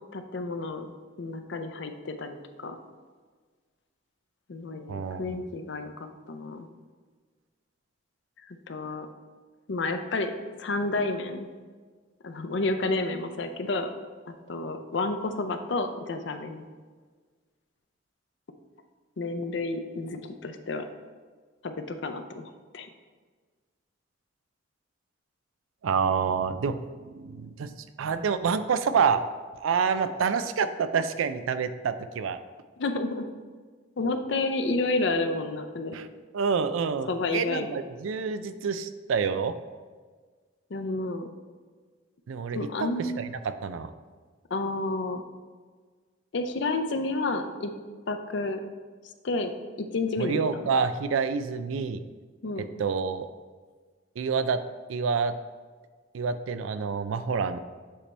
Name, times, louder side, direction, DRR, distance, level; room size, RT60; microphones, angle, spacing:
voice 1, 0.1-0.9 1.2-2.8 4.5-5.9 6.3-6.7 8.5-9.1 9.7-10.3 10.6-11.5 12.2-13.9 14.3-16.7 19.2-20.9 21.6-22.9 32.8-33.3 34.0-36.0 37.1-37.8 40.7-41.3 42.5-43.3 44.5-45.2 46.3-47.7 48.1-48.6 49.2-50.7 52.4-52.7, left 2 dB, 65° left, 7 dB, 0.5 m, -30 dB
voice 2, 4.9-5.4 25.8-27.7 28.0-29.2 29.6-32.4 35.9-36.1 36.3-39.5 42.3-43.9 50.2-52.0 52.8-53.3 54.2-54.6 54.9-55.3 56.1-57.6, right 6 dB, 85° right, 11 dB, 0.4 m, -28 dB
7.5 x 3.4 x 4.2 m, 1.5 s
head